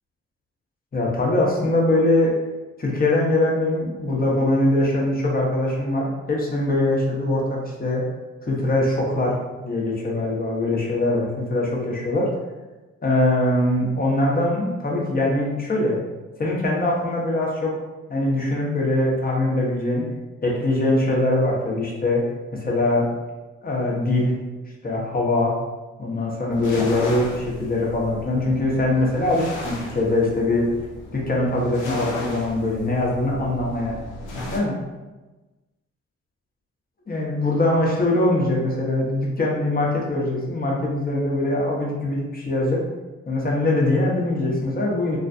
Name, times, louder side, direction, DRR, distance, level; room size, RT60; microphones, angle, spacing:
voice 1, 0.9-2.3 2.8-8.0 8.4-12.3 13.0-16.0 16.4-17.7 18.1-20.1 20.4-22.2 22.5-23.0 23.6-24.3 24.8-25.5 26.0-30.6 31.1-33.9 34.5-34.7 37.1-42.8 43.3-45.2, left 2 dB, 30° left, -3 dB, 0.8 m, -22 dB
sound 1, 26.5-34.6, left 1 dB, 90° left, 0.6 m, -35 dB
2.4 x 2.2 x 2.5 m, 1.2 s
supercardioid pair, 55°, 30 cm